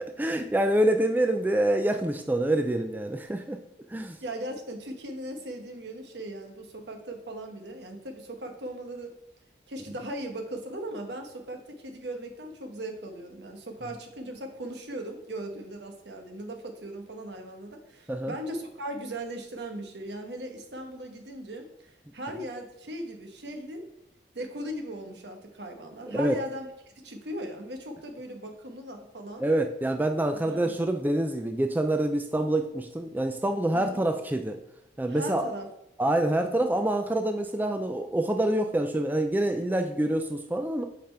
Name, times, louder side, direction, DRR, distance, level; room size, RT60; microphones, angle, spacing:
voice 1, 0.0-3.6 3.9-4.2 18.1-18.3 26.1-26.4 29.4-34.6 35.0-35.5 36.0-40.8, right 1 dB, 10° right, 6 dB, 0.3 m, -26 dB
voice 2, 4.2-9.1 9.7-23.9 24.3-26.7 27.0-29.4 30.3-30.8 33.7-34.1 35.1-35.7, right 1 dB, 80° right, 4 dB, 1.1 m, -38 dB
5.6 x 5.1 x 4.4 m, 0.81 s
head